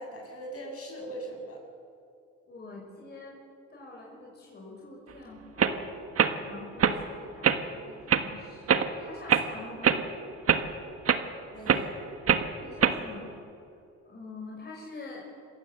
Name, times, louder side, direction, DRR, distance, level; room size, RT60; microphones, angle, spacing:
voice 1, 0.0-1.6 6.8-6.9 11.5-12.0, right 1 dB, 50° left, 1 dB, 6.9 m, -40 dB
voice 2, 2.5-3.4 3.7-5.8 6.4-10.0 12.5-13.4 14.0-15.2, left 3 dB, 35° left, -3 dB, 5.7 m, -45 dB
sound 1, 5.1-5.2 5.6-5.8 6.2-6.3 6.8-7.0 7.4-7.6 8.1-8.2 8.7-8.9 9.3-9.5 9.8-10.0 10.5-10.6 11.0-11.2 11.7-11.8 12.3-12.4 12.8-13.0, right 7 dB, 50° right, 1.5 m, -23 dB
27.0 x 15.0 x 7.9 m, 2.6 s
cardioid pair, 90°, 30 cm